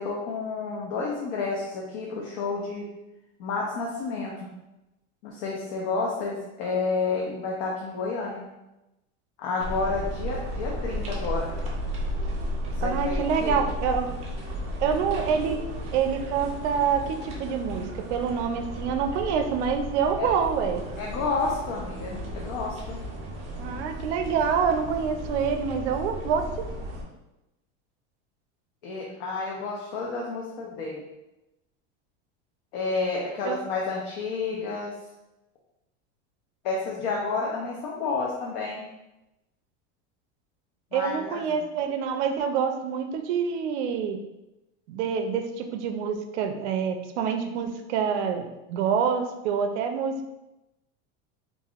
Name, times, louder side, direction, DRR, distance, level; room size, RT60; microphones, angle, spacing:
voice 1, 0.0-2.9 3.4-4.5 5.2-8.5 9.4-11.5 12.8-13.6 20.2-20.3 21.0-23.0 28.8-31.0 32.7-34.9 36.6-38.9 40.9-41.4, left 4 dB, 55° left, -2 dB, 0.6 m, -30 dB
sound 1, 9.6-27.0, equal, 20° right, 0.4 m, -34 dB
voice 2, 12.8-14.1 14.8-15.6 15.9-20.8 23.6-26.5 33.4-33.6 40.9-44.2 44.9-50.3, right 7 dB, 90° right, 6 dB, 0.5 m, -26 dB
3.3 x 2.5 x 2.3 m, 0.96 s
supercardioid pair, 160°, 33 cm